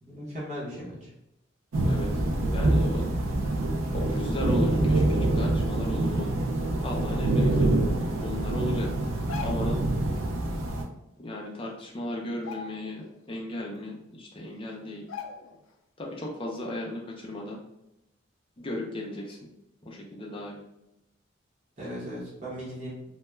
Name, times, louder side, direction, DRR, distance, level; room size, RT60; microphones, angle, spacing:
voice 1, 0.0-1.1 21.8-23.0, equal, 35° right, -7 dB, 0.8 m, -37 dB
sound 1, 1.7-10.8, right 2 dB, 90° right, 0.4 m, -25 dB
voice 2, 2.5-3.1 3.9-6.3 6.8-7.8 8.2-8.9 9.4-9.8 11.2-15.1 16.0-17.6 18.6-19.4 19.8-20.6, left 1 dB, 25° left, -2 dB, 0.4 m, -35 dB
sound 2, 9.1-9.8 11.3-11.4 11.7-11.9 12.3-13.2 13.6-13.7 14.4-14.5 15.1-15.7 16.1-16.2, left 5 dB, 85° left, 0.4 m, -40 dB
2.2 x 2.1 x 3.0 m, 0.87 s
head